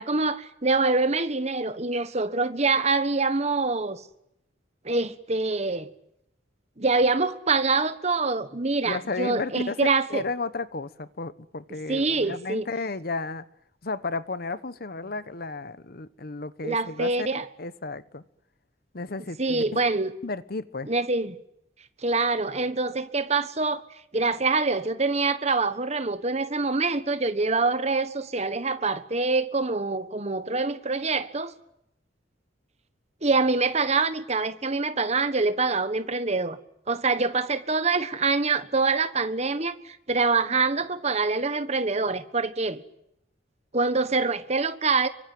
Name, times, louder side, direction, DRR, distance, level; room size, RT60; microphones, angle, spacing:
voice 1, 0.0-4.0 4.8-5.9 6.8-10.2 11.9-12.7 16.6-17.5 19.4-20.1 20.9-21.3 22.0-23.8 24.1-31.5 33.2-36.6 36.9-42.8 43.7-45.1, right 3 dB, 35° right, 1.4 m, -25 dB
voice 2, 8.8-13.5 13.8-18.2 18.9-19.6 20.2-20.9, left 3 dB, 50° left, 1.0 m, -33 dB
25.0 x 24.0 x 9.3 m
head